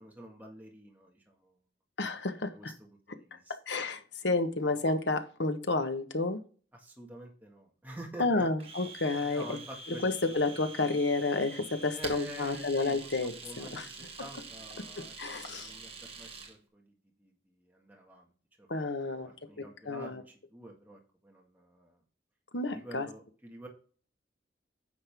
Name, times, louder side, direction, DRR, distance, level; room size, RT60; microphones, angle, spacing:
voice 1, 0.0-1.6 2.5-3.5 6.7-8.4 9.2-10.3 11.9-13.1 13.4-18.3 18.6-18.7 19.0-22.0 22.7-23.7, right 1 dB, 10° right, 0 dB, 1.8 m, -48 dB
voice 2, 2.0-2.7 3.7-6.4 8.2-9.6 9.9-13.9 15.0-15.7 18.7-19.3 19.6-20.2 22.5-23.1, left 3 dB, 70° left, 8 dB, 1.2 m, -31 dB
Domestic sounds home sounds, 8.6-16.5, right 4 dB, 30° right, 1.7 m, -46 dB
9.7 x 6.4 x 3.6 m, 0.40 s
head